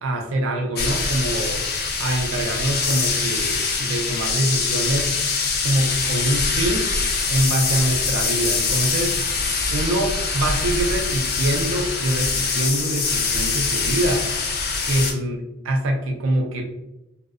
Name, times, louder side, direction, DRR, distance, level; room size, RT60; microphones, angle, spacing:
voice 1, 0.0-1.6 2.0-5.2 5.6-6.9 7.3-9.2 9.7-14.3 14.8-16.6, right 1 dB, 80° right, 3 dB, 0.4 m, -24 dB
sound 1, 0.8-15.1, left 4 dB, 50° left, 0.5 m, -24 dB
2.6 x 2.0 x 2.4 m, 0.95 s
head